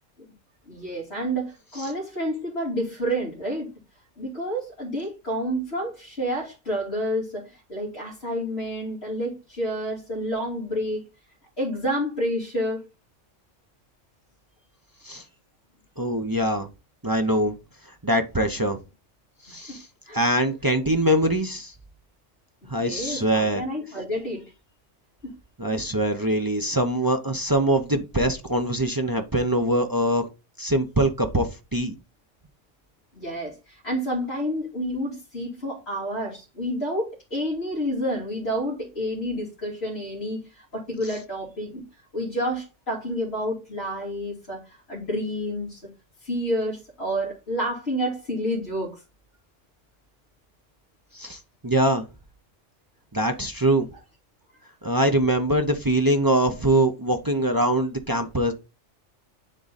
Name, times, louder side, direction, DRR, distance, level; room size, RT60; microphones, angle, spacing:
voice 1, 0.7-3.7 4.2-11.0 11.6-12.8 19.5-19.6 20.0-20.2 22.6-24.4 25.2-25.3 33.1-41.8 42.1-45.8 46.2-49.0, equal, 55° left, 2.9 m, -29 dB
voice 2, 16.0-16.7 17.0-17.5 18.0-18.8 19.5-19.8 20.1-21.7 22.7-23.6 25.6-30.3 30.6-31.9 51.1-52.1 53.1-53.9 54.8-58.5, right 1 dB, 20° right, 0.7 m, -23 dB
9.9 x 3.8 x 4.1 m
omnidirectional pair, 1.3 m